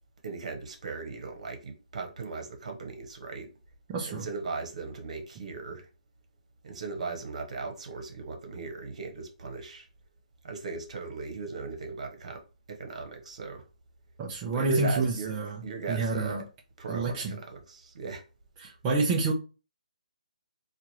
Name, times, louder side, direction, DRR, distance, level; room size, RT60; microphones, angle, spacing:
voice 1, 0.2-3.5 4.1-5.9 6.6-9.9 10.4-13.6 14.5-15.3 15.6-16.4 16.8-18.2, right 4 dB, 60° right, 1.3 m, -37 dB
voice 2, 3.9-4.3 14.2-15.6 15.9-16.4 16.9-17.3 18.6-19.3, right 3 dB, 20° right, 0.7 m, -28 dB
4.3 x 2.5 x 3.1 m
hypercardioid pair, 160°, 4 cm